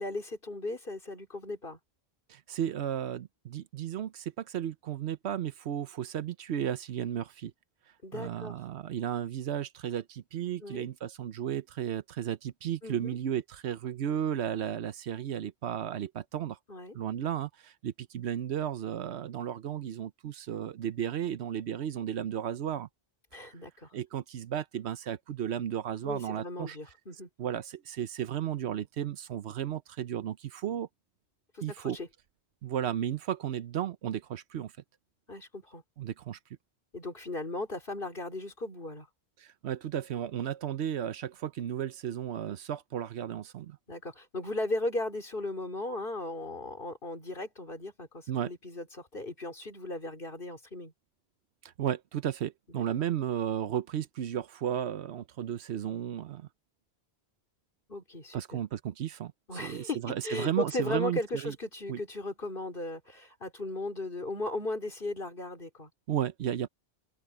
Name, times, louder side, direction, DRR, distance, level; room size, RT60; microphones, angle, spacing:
voice 1, 0.0-1.8 8.0-8.6 10.6-10.9 12.8-13.1 16.7-17.0 23.3-23.9 26.0-27.3 31.5-31.6 31.9-32.1 35.3-35.8 36.9-39.1 43.9-50.9 52.7-52.8 57.9-58.6 59.5-65.9, left 2 dB, 55° left, 3.7 m, -36 dB
voice 2, 2.3-7.5 8.1-16.6 16.9-22.9 23.9-26.8 27.4-30.9 31.6-32.0 32.6-34.7 36.0-36.4 39.4-43.8 48.3-48.5 51.8-56.5 58.3-59.3 59.6-61.6 61.9-62.0 66.1-66.7, right 10 dB, 80° right, 1.0 m, -34 dB
open air
omnidirectional pair, 1.1 m